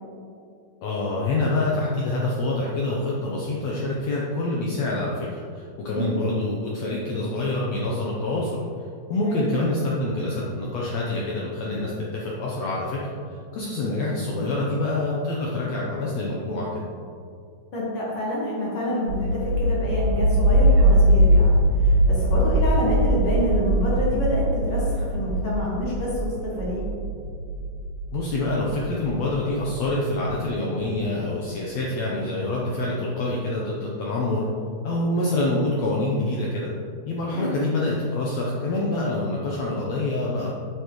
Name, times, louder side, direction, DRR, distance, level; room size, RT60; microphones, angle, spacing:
voice 1, 0.8-5.3 5.5-8.6 9.1-16.8 28.1-34.5 34.8-36.7 37.1-40.5, left 2 dB, 75° left, -4 dB, 1.6 m, -26 dB
voice 2, 17.7-26.8 37.3-37.6, left 1 dB, 50° left, -6 dB, 2.2 m, -27 dB
sound 1, 19.1-29.8, right 1 dB, 65° right, 2.2 m, -21 dB
8.1 x 6.9 x 3.1 m, 2.4 s
omnidirectional pair, 4.0 m